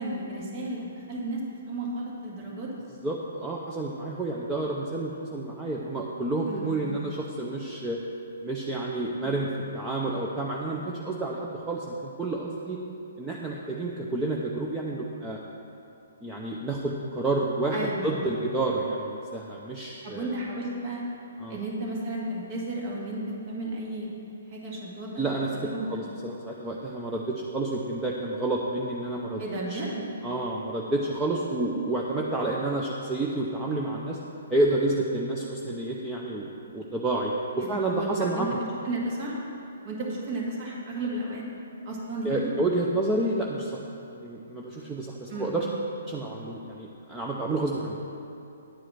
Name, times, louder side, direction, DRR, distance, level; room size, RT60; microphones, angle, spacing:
voice 1, 0.0-2.7 6.5-7.0 9.2-9.4 17.7-18.1 20.0-21.0 21.5-23.2 23.5-24.1 24.5-26.0 29.4-30.1 37.6-39.3 39.8-41.4 41.9-42.5 45.3-45.5, right 2 dB, 40° right, -3 dB, 1.9 m, -33 dB
voice 2, 3.0-8.0 8.4-12.8 13.2-15.4 16.2-20.4 21.4-21.6 25.2-29.4 29.7-29.8 30.2-34.2 34.5-38.5 42.2-45.7 46.1-48.0, right 2 dB, 10° right, -3 dB, 0.7 m, -29 dB
10.0 x 4.8 x 7.5 m, 2.7 s
figure-of-eight pair, 130°, 0 cm